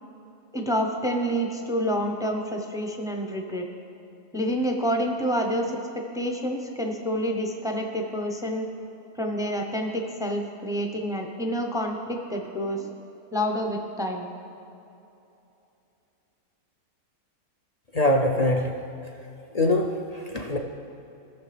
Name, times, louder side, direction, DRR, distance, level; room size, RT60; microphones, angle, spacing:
voice 1, 0.5-3.6 4.3-8.7 9.2-12.9 13.3-14.3, equal, 5° right, 2 dB, 0.4 m, -28 dB
voice 2, 17.9-18.8 19.5-20.6, left 1 dB, 65° left, 1 dB, 0.4 m, -23 dB
18.5 x 6.9 x 3.3 m, 2.9 s
omnidirectional pair, 1.5 m